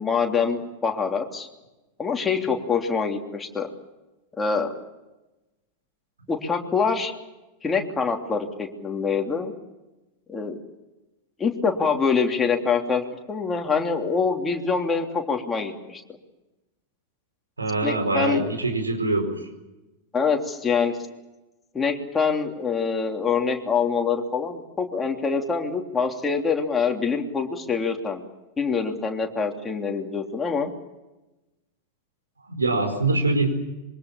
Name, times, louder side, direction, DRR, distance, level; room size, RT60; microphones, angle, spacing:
voice 1, 0.0-1.5 2.0-3.7 4.4-4.7 6.3-7.1 7.6-9.5 10.3-10.6 11.4-16.0 17.8-18.5 20.1-20.9 21.7-28.2 28.6-30.7, left 5 dB, 15° left, 2 dB, 3.2 m, -25 dB
voice 2, 17.6-19.4 32.5-33.5, right 2 dB, 80° right, 4 dB, 4.8 m, -23 dB
26.5 x 24.0 x 7.2 m, 1.0 s
figure-of-eight pair, 90°, 0 cm